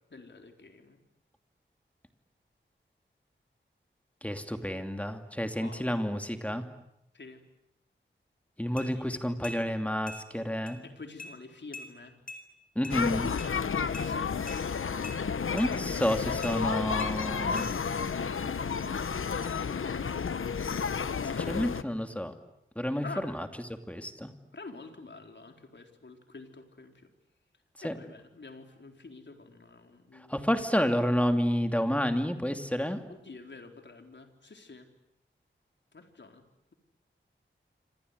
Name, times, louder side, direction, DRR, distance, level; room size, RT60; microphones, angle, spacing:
voice 1, 0.1-1.0 5.6-5.9 6.5-6.6 7.1-7.4 8.7-9.2 10.8-12.2 13.9-14.5 18.1-20.1 23.0-23.4 24.5-27.1 27.8-30.4 33.1-34.9 35.9-36.4, left 3 dB, 60° left, 5 dB, 4.1 m, -48 dB
voice 2, 4.2-6.6 8.6-10.8 12.7-13.3 15.5-17.7 21.2-22.3 22.8-23.5 23.9-24.3 27.8-27.9 30.3-33.0, equal, 5° left, 6 dB, 2.7 m, -30 dB
sound 1, 8.8-8.9 9.4-9.6 10.1-10.2 10.7-10.8 11.2-11.3 11.7-11.9 12.3-12.4 12.8-13.0 13.4-13.5 13.9-14.1 14.5-14.6 15.0-15.2 15.6-15.7 16.4-16.6 17.0-17.1 17.6-17.7, left 2 dB, 45° left, 4.8 m, -42 dB
sound 2, 12.9-21.8, left 6 dB, 85° left, 1.1 m, -31 dB
27.5 x 26.5 x 8.2 m, 0.82 s
wide cardioid pair, 95°, 20 cm